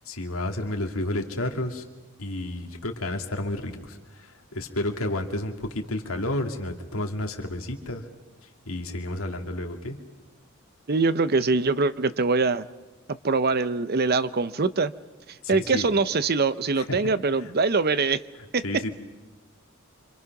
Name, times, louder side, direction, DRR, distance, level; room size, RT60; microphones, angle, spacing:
voice 1, 0.1-1.9 2.2-8.1 8.7-10.0 15.4-15.9 16.8-17.1 17.4-17.5 18.4-18.9, left 1 dB, 90° left, 4 dB, 2.4 m, -31 dB
voice 2, 10.9-12.6 13.2-14.9 15.5-18.2 18.5-18.6, right 4 dB, 50° right, 14 dB, 0.7 m, -23 dB
26.5 x 26.0 x 6.0 m, 1.1 s
head